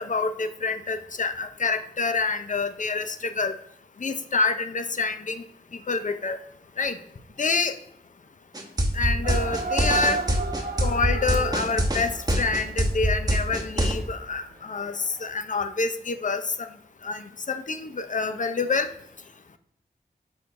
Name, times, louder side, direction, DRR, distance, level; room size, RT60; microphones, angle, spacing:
voice 1, 0.0-3.6 4.0-5.4 5.9-6.4 6.8-7.0 7.4-7.7 8.9-10.2 10.8-16.7 17.0-18.9, left 4 dB, 50° left, 10 dB, 0.5 m, -27 dB
sound 1, 8.5-13.9, right 1 dB, 20° right, 1.1 m, -23 dB
sound 2, 9.2-15.2, right 4 dB, 60° right, 0.9 m, -35 dB
6.5 x 5.5 x 2.6 m, 0.74 s
wide cardioid pair, 55°, 17 cm